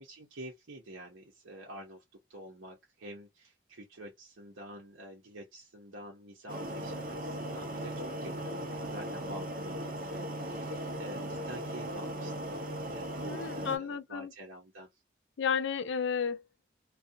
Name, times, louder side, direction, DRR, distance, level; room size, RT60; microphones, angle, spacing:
voice 1, 0.0-2.0 2.3-12.5 12.9-15.0, right 1 dB, 90° right, 0.8 m, -48 dB
sound 1, 6.5-13.8, right 1 dB, 45° right, 0.7 m, -38 dB
voice 2, 13.3-14.3 15.4-16.4, left 6 dB, 70° left, 0.4 m, -32 dB
2.5 x 2.3 x 2.7 m
head